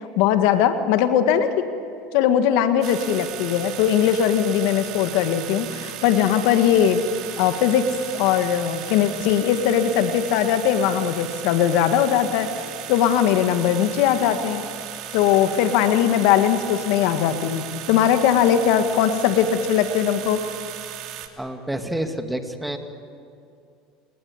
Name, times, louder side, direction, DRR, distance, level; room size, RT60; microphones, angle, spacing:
voice 1, 0.2-1.6 2.1-7.0 7.4-12.5 12.9-14.6 15.1-20.4, left 9 dB, 70° left, 8 dB, 1.8 m, -20 dB
sound 1, 2.8-21.3, right 11 dB, 60° right, 2.6 m, -36 dB
voice 2, 21.4-22.8, right 1 dB, 5° right, 6 dB, 2.5 m, -28 dB
29.0 x 18.5 x 9.8 m, 2.5 s
supercardioid pair, 95°, 0 cm